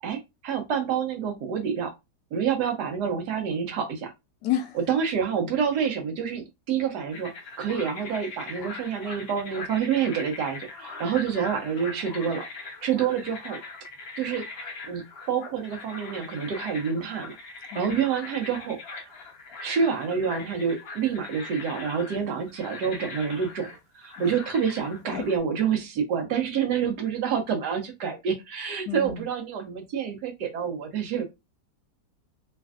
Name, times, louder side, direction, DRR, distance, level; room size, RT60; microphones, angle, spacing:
voice 1, 0.0-1.9 2.3-4.1 4.9-12.5 12.8-13.6 14.2-14.5 14.8-18.8 19.0-19.1 19.6-23.7 23.9-31.2, right 7 dB, 70° right, 1.2 m, -28 dB
voice 2, 4.4-4.8 17.7-18.0 24.2-24.3 25.1-25.2 28.9-29.2, left 10 dB, 75° left, 1.2 m, -30 dB
sound 1, 7.1-25.4, left 3 dB, 60° left, 0.6 m, -41 dB
3.2 x 2.5 x 2.3 m
omnidirectional pair, 1.9 m